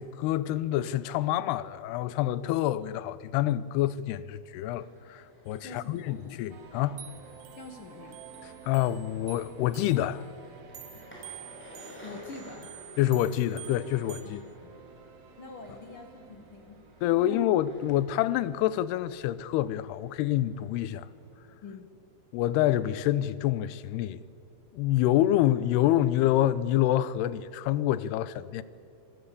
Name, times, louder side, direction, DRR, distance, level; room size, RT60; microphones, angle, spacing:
voice 1, 0.0-7.0 8.7-10.3 13.0-14.4 17.0-21.1 22.3-24.2 24.7-28.6, left 13 dB, 85° left, 2.7 m, -27 dB
sound 1, 4.4-21.4, equal, 5° left, 6.0 m, -55 dB
sound 2, 5.5-6.0 6.3-6.4 7.0-10.2 10.8-14.2, right 12 dB, 75° right, 3.3 m, -49 dB
voice 2, 5.6-6.2 7.6-8.2 12.0-12.7 14.2-14.8 15.4-16.8 17.2-17.4 21.6-21.9, left 3 dB, 65° left, 1.3 m, -45 dB
sound 3, 6.5-21.6, right 5 dB, 55° right, 2.0 m, -53 dB
26.0 x 16.0 x 8.4 m
omnidirectional pair, 4.6 m